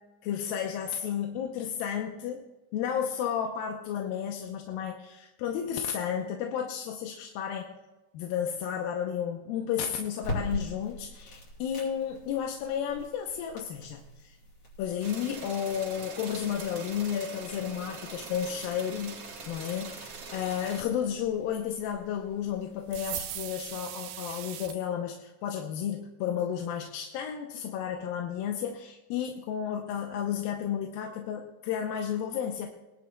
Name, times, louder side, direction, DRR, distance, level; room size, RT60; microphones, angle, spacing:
voice 1, 0.2-2.4 2.7-7.7 8.1-14.4 14.8-19.1 19.5-32.7, left 8 dB, 90° left, 2 dB, 2.6 m, -32 dB
sound 1, 10.2-23.7, left 1 dB, 40° left, 4.3 m, -44 dB
sound 2, 15.0-20.8, right 4 dB, 45° right, 2.9 m, -43 dB
sound 3, 22.9-24.8, right 12 dB, 90° right, 2.5 m, -38 dB
22.0 x 11.0 x 2.3 m, 1.1 s
omnidirectional pair, 4.0 m